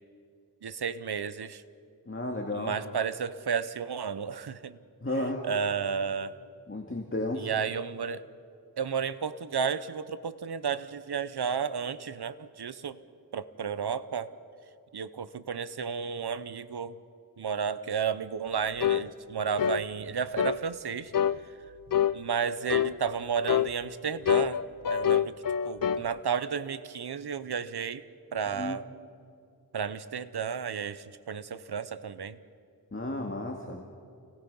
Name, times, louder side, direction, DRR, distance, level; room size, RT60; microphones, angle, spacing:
voice 1, 0.6-1.6 2.5-4.8 5.4-6.4 7.4-8.2 8.8-13.0 13.3-14.3 14.9-16.9 17.4-21.1 22.1-24.6 24.9-25.3 25.6-28.0 28.3-28.9 29.7-32.4, right 6 dB, 85° right, 14 dB, 0.9 m, -32 dB
voice 2, 2.1-2.8 5.0-5.5 6.7-7.5 28.5-28.8 32.9-33.8, left 1 dB, 35° left, 1 dB, 2.2 m, -33 dB
sound 1, 18.8-19.1 19.6-19.8 20.4-20.6 21.1-21.4 21.9-22.2 22.7-23.0 23.5-23.7 24.3-26.1, left 9 dB, 60° left, 0.6 m, -26 dB
29.5 x 19.5 x 5.5 m, 2.4 s
wide cardioid pair, 45°, 38 cm